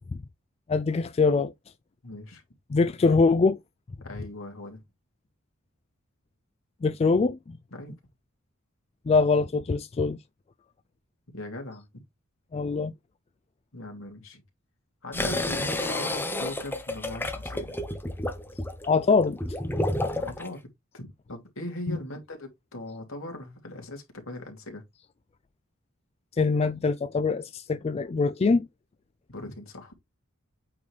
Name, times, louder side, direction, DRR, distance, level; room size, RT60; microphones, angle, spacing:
voice 1, 0.7-1.5 2.7-3.6 6.8-7.6 9.1-10.2 12.5-12.9 18.9-19.4 21.9-22.0 26.4-28.7, left 4 dB, 30° left, 0.3 m, -23 dB
voice 2, 2.0-2.4 4.0-4.8 7.7-7.9 11.3-11.9 13.7-14.4 15.0-17.7 20.1-24.8 29.3-29.9, left 1 dB, 70° left, 2.7 m, -39 dB
sound 1, 15.1-20.5, left 1 dB, 10° left, 1.0 m, -30 dB
8.5 x 3.9 x 3.3 m
head